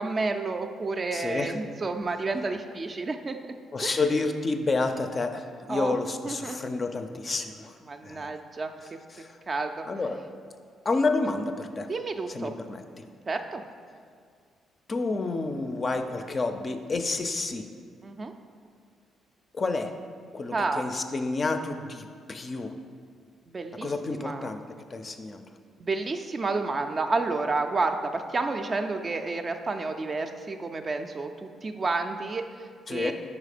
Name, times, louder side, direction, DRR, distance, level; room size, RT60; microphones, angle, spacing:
voice 1, 0.0-3.5 3.8-4.0 5.7-6.0 6.2-6.6 7.9-8.7 9.5-9.9 11.8-12.5 13.3-13.6 15.1-15.2 18.0-18.3 20.5-20.8 23.5-23.9 24.2-24.5 25.8-33.1, right 3 dB, 35° right, 6 dB, 0.3 m, -30 dB
voice 2, 1.1-1.5 3.7-7.7 8.0-8.3 9.1-9.3 9.9-10.2 10.9-11.9 12.3-13.0 14.9-17.7 19.5-19.9 20.3-22.7 23.8-24.6 24.9-25.4 32.9-33.1, left 3 dB, 35° left, 7 dB, 0.4 m, -29 dB
4.8 x 4.1 x 5.0 m, 2.1 s
cardioid pair, 90°, 0 cm